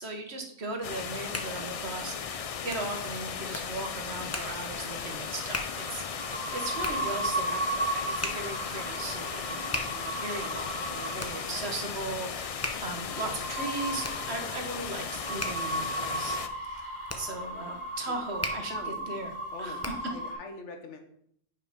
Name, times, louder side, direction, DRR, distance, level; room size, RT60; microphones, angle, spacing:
voice 1, 0.0-19.3 19.6-19.8, right 2 dB, 65° right, 4 dB, 1.5 m, -38 dB
sound 1, 0.8-16.5, left 7 dB, 65° left, 0.3 m, -37 dB
Hands, 0.9-20.2, left 2 dB, 15° left, 0.6 m, -41 dB
sound 2, 4.0-20.3, right 1 dB, 10° right, 1.8 m, -36 dB
voice 2, 18.7-19.2 19.5-21.0, left 4 dB, 85° left, 5 dB, 1.4 m, -43 dB
5.9 x 4.9 x 5.1 m, 0.68 s
omnidirectional pair, 1.2 m